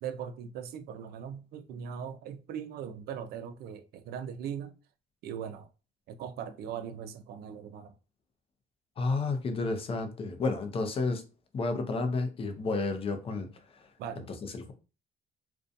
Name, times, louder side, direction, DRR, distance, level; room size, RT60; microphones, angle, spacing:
voice 1, 0.0-4.7 5.2-5.7 6.1-7.9 14.0-14.3, right 8 dB, 70° right, 0.4 m, -40 dB
voice 2, 9.0-11.2 11.5-13.5 14.2-14.7, left 3 dB, 35° left, 0.5 m, -31 dB
2.6 x 2.2 x 2.5 m
cardioid pair, 110°, 17 cm